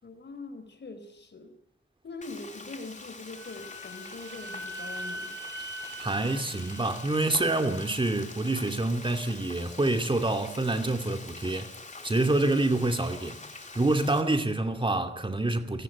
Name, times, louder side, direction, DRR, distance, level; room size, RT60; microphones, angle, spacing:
voice 1, 0.0-1.6 2.0-5.3, left 3 dB, 55° left, 4.4 m, -42 dB
Frying (food), 2.2-14.2, left 3 dB, 35° left, 3.1 m, -45 dB
Wind instrument woodwind instrument, 3.4-7.8, equal, 65° right, 4.1 m, -42 dB
voice 2, 6.0-11.7 12.0-15.8, right 2 dB, 25° right, 2.5 m, -27 dB
29.5 x 17.5 x 8.6 m
wide cardioid pair, 95°, 21 cm